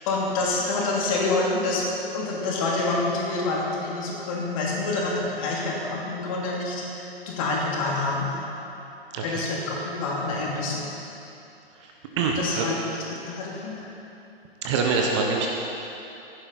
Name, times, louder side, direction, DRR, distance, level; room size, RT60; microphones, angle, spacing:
voice 1, 0.1-8.3 9.2-10.9 12.4-12.8 13.1-13.9, left 3 dB, 35° left, -3 dB, 2.7 m, -27 dB
voice 2, 9.1-9.4 11.7-12.7 14.6-15.5, right 4 dB, 30° right, 1 dB, 1.1 m, -25 dB
15.5 x 11.0 x 4.1 m, 2.8 s
figure-of-eight pair, 120°, 30 cm